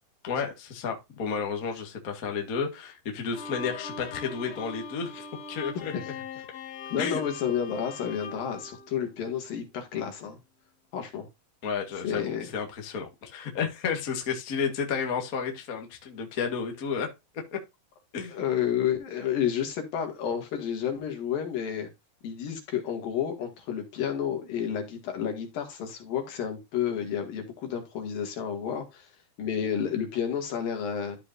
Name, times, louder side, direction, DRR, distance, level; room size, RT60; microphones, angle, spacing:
voice 1, 0.2-5.9 7.0-7.2 11.6-17.1 17.5-17.6 18.1-18.4, left 6 dB, 35° left, 1.4 m, -32 dB
Bowed string instrument, 3.3-9.6, left 4 dB, 55° left, 2.3 m, -42 dB
voice 2, 6.9-10.4 10.9-11.3 12.0-12.5 18.3-21.9 22.2-29.1 29.4-31.2, left 8 dB, 75° left, 3.8 m, -30 dB
13.0 x 4.9 x 2.6 m
omnidirectional pair, 4.2 m